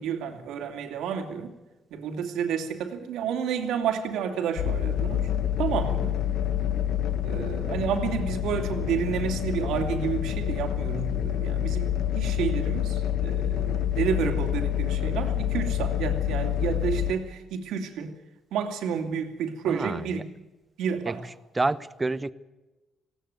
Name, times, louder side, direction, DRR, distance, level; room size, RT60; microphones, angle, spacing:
voice 1, 0.0-1.5 1.9-5.3 5.6-6.2 7.2-18.2 18.5-20.2 20.8-21.2, right 7 dB, 85° right, 2.6 m, -30 dB
sound 1, 4.6-17.1, left 10 dB, 80° left, 1.2 m, -27 dB
voice 2, 19.7-20.2 21.0-21.2 21.5-22.3, right 2 dB, 20° right, 0.9 m, -28 dB
19.5 x 16.5 x 9.4 m
cardioid pair, 90°, 0 cm